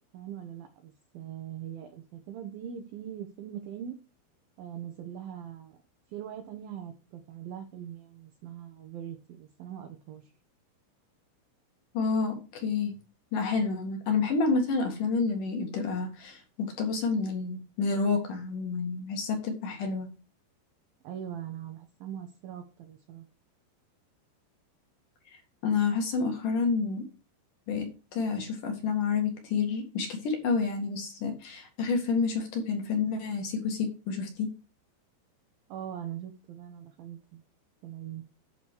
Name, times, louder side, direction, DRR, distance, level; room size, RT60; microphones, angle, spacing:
voice 1, 0.1-4.0 4.6-5.8 6.1-10.3 21.0-23.3 35.7-37.4 37.8-38.2, right 10 dB, 75° right, 5 dB, 2.3 m, -41 dB
voice 2, 11.9-12.9 13.3-20.1 25.6-27.0 27.7-27.9 28.1-34.5, left 4 dB, 50° left, 3 dB, 3.1 m, -29 dB
11.5 x 5.0 x 6.4 m, 0.33 s
omnidirectional pair, 5.5 m